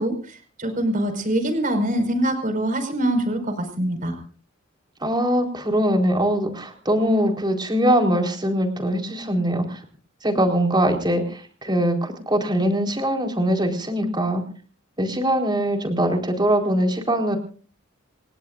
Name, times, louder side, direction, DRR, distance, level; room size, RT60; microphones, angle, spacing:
voice 1, 0.0-4.2, right 1 dB, 40° right, 7 dB, 5.2 m, -24 dB
voice 2, 5.0-9.8 10.2-14.4 15.0-17.4, equal, 20° right, 4 dB, 4.3 m, -22 dB
28.5 x 19.0 x 2.6 m, 0.41 s
head